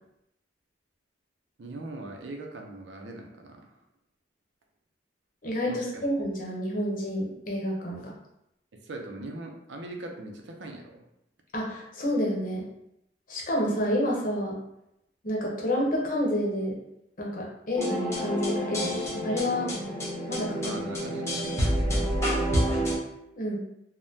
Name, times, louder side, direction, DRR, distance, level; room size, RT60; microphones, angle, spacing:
voice 1, 1.6-3.6 5.7-6.0 8.8-11.0 20.6-23.0, right 2 dB, 85° right, 2 dB, 0.5 m, -41 dB
voice 2, 5.4-8.1 11.5-12.7 13.3-14.5 15.2-16.7 17.2-19.7 20.3-20.6 23.4-23.6, equal, 50° left, -3 dB, 0.8 m, -29 dB
sound 1, 17.8-23.0, equal, 15° left, 0.8 m, -28 dB
3.5 x 2.1 x 2.7 m, 0.83 s
head